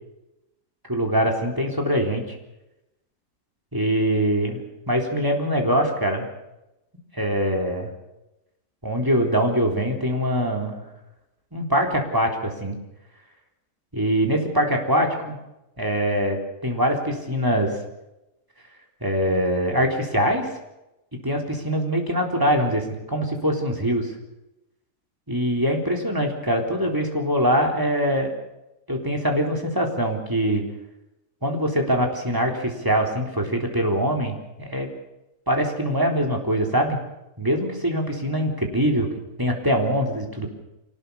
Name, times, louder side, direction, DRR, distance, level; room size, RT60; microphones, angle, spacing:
voice 1, 0.9-2.4 3.7-6.3 7.1-7.9 8.8-10.8 11.5-12.8 13.9-15.4 15.8-17.7 19.0-20.5 21.1-24.1 25.3-28.3 28.9-30.6 31.4-34.9 35.5-37.0 37.4-39.1 39.4-40.5, equal, 10° right, 1 dB, 3.7 m, -23 dB
25.0 x 18.5 x 7.0 m, 0.93 s
omnidirectional pair, 1.7 m